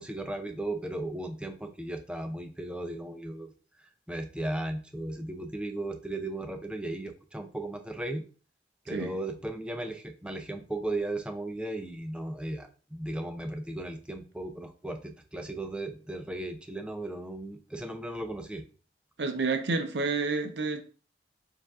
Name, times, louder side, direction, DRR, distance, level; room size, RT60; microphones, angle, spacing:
voice 1, 0.0-3.5 3.8-8.2 8.9-18.6, right 1 dB, 5° right, 0.4 m, -36 dB
voice 2, 19.2-20.8, right 3 dB, 70° right, 0.5 m, -29 dB
6.6 x 2.5 x 2.4 m
head